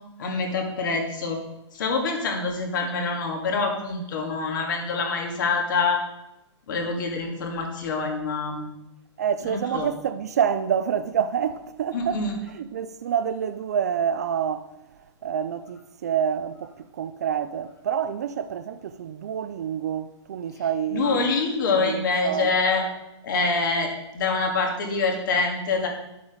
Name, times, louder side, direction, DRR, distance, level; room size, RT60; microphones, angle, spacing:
voice 1, 0.2-1.4 1.7-6.0 6.7-8.7 9.5-9.9 11.9-12.3 20.9-22.8 23.2-25.9, left 4 dB, 40° left, 2.0 m, -25 dB
voice 2, 9.2-12.2 12.5-14.7 15.0-21.3 21.7-22.6, right 8 dB, 35° right, 0.4 m, -27 dB
11.0 x 7.2 x 5.0 m
hypercardioid pair, 175°, 15 cm